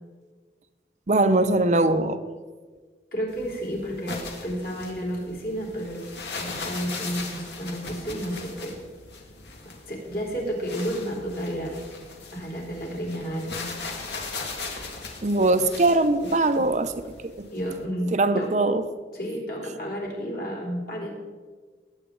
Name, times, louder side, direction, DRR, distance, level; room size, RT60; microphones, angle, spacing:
voice 1, 1.1-2.2 15.2-16.9 17.2-17.5 18.1-18.9, right 2 dB, 40° right, 11 dB, 0.6 m, -21 dB
voice 2, 3.1-4.2 4.4-8.8 9.9-11.8 12.3-13.6 17.5-18.5 19.1-21.1, equal, 55° left, -3 dB, 3.9 m, -31 dB
sound 1, 3.3-17.8, left 3 dB, 80° left, 1.9 m, -39 dB
19.5 x 9.0 x 3.9 m, 1.5 s
head